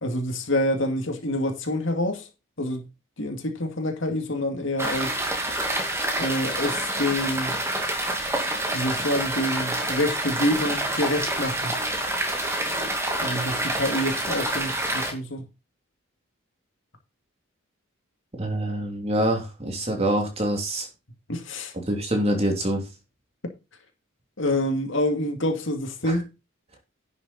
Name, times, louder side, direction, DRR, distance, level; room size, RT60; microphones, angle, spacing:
voice 1, 0.0-2.3 2.6-2.9 3.2-5.2 6.2-7.6 8.7-11.8 13.2-15.5 21.3-21.7 24.4-26.2, left 1 dB, 60° left, 2.4 m, -27 dB
sound 1, 4.8-15.1, right 1 dB, 10° right, 2.1 m, -27 dB
voice 2, 18.4-20.9 21.8-22.9 26.0-26.2, right 1 dB, 30° right, 3.1 m, -25 dB
10.5 x 6.9 x 4.3 m
head